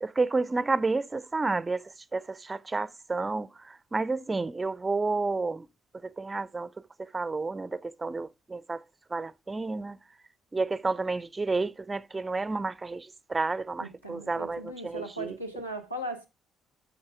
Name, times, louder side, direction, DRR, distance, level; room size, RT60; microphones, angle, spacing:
voice 1, 0.0-1.8 2.1-5.7 6.2-6.7 7.1-8.8 9.1-10.0 10.5-15.4, right 3 dB, 20° right, 0.4 m, -30 dB
voice 2, 13.8-16.3, right 1 dB, 90° left, 0.9 m, -38 dB
9.7 x 6.4 x 3.3 m
figure-of-eight pair, 45°, 0 cm